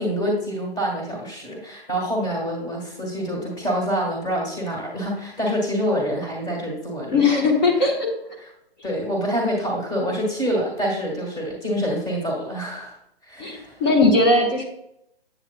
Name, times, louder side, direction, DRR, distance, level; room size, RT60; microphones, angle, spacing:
voice 1, 0.0-7.2 8.4-8.5 8.8-13.0 13.2-13.8, equal, 15° left, -1 dB, 1.6 m, -26 dB
voice 2, 7.1-8.1 13.4-14.6, left 3 dB, 45° left, 1 dB, 1.3 m, -19 dB
8.1 x 7.1 x 2.2 m, 0.78 s
hypercardioid pair, 150°, 31 cm